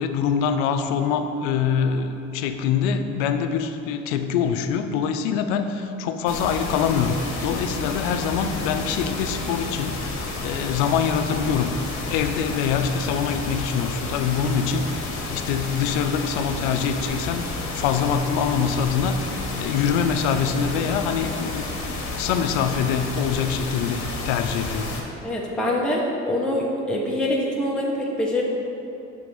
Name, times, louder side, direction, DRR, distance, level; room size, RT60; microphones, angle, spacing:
voice 1, 0.0-11.8 12.1-19.3 19.6-21.6 22.2-24.9, left 7 dB, 85° left, 8 dB, 0.5 m, -24 dB
sound 1, 6.3-25.0, left 3 dB, 55° left, 1.2 m, -31 dB
voice 2, 25.2-28.4, left 1 dB, 5° left, -3 dB, 0.7 m, -24 dB
5.9 x 3.4 x 5.2 m, 2.8 s
supercardioid pair, 80°, 32 cm